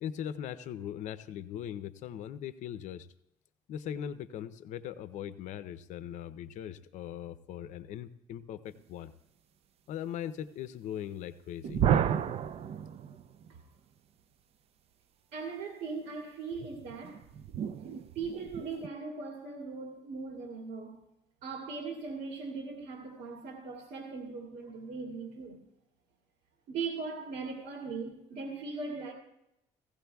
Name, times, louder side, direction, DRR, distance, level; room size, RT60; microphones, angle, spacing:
voice 1, 0.0-3.1 3.7-9.1 9.9-11.8, left 10 dB, 70° left, 0.6 m, -40 dB
sound 1, 11.6-13.6 16.5-18.9, right 9 dB, 50° right, 0.5 m, -32 dB
voice 2, 15.3-17.2 18.1-21.0 21.4-25.6 26.7-29.1, right 4 dB, 75° right, 2.3 m, -39 dB
17.5 x 16.0 x 2.3 m
cardioid pair, 120°, 13 cm